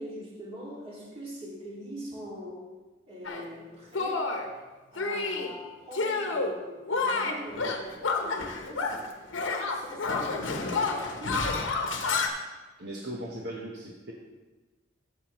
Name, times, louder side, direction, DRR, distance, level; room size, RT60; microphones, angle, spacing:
voice 1, 0.0-2.6 3.1-4.3 4.9-9.1 9.7-11.5, equal, 30° right, -4 dB, 2.2 m, -42 dB
Shatter, 3.2-3.4 3.9-4.5 5.0-5.5 5.9-6.5 6.9-9.1 9.3-12.3, left 3 dB, 80° left, 0.9 m, -29 dB
voice 2, 12.8-14.1, right 1 dB, 55° right, -2 dB, 1.0 m, -38 dB
13.0 x 7.3 x 3.0 m, 1.3 s
head